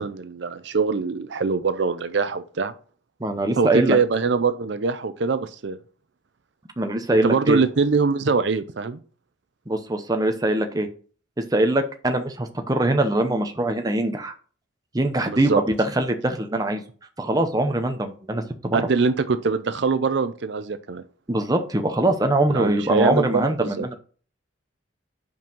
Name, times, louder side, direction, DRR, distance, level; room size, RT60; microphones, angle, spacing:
voice 1, 0.0-2.7 3.6-5.8 7.2-9.0 15.3-15.6 18.7-21.0 22.5-23.9, right 4 dB, 60° right, 10 dB, 0.5 m, -23 dB
voice 2, 3.2-4.0 6.8-7.6 9.7-10.9 11.5-14.3 14.9-16.8 17.2-18.9 21.3-23.9, right 1 dB, 20° right, 6 dB, 0.7 m, -22 dB
5.4 x 5.1 x 6.1 m, 0.41 s
head